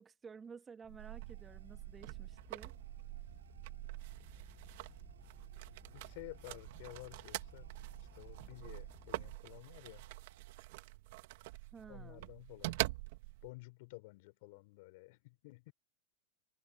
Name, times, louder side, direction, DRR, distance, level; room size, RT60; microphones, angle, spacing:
voice 1, 0.0-2.7 11.7-12.2, right 6 dB, 20° right, 2.0 m, -53 dB
sound 1, 0.8-9.4, left 4 dB, 15° left, 5.8 m, -60 dB
sound 2, 0.9-13.5, right 20 dB, 65° right, 1.8 m, -45 dB
sound 3, 1.0-10.6, right 8 dB, 90° right, 6.5 m, -63 dB
voice 2, 5.9-7.7 8.1-10.1 11.9-12.8 13.4-15.7, left 24 dB, 60° left, 3.9 m, -52 dB
hypercardioid pair, 110°, 0 cm